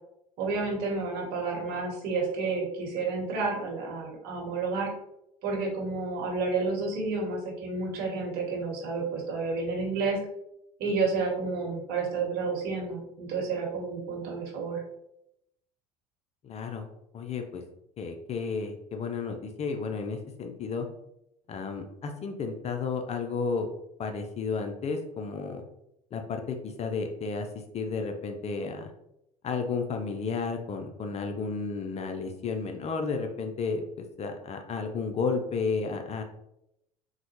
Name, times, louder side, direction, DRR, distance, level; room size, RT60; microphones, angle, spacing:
voice 1, 0.4-4.9 5.4-10.2 10.8-14.8, right 4 dB, 55° right, 0 dB, 1.1 m, -30 dB
voice 2, 16.4-16.9 17.1-17.6 18.0-20.9 21.5-23.7 24.0-25.6 26.1-27.5 27.7-28.9 29.4-36.2, left 4 dB, 35° left, 5 dB, 0.5 m, -32 dB
3.8 x 2.1 x 3.0 m, 0.81 s
hypercardioid pair, 70°, 20 cm